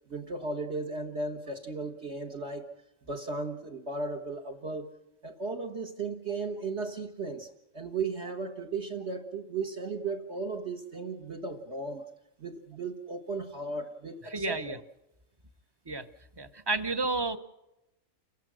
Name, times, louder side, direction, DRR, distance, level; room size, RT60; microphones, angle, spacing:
voice 1, 0.1-2.7 3.1-4.9 5.2-7.5 7.7-12.0 12.4-14.8, right 3 dB, 50° right, 1 dB, 1.5 m, -35 dB
voice 2, 14.2-14.8 15.9-16.0 16.4-17.4, right 3 dB, 20° right, 10 dB, 0.7 m, -31 dB
29.5 x 16.0 x 6.2 m, 0.95 s
omnidirectional pair, 1.5 m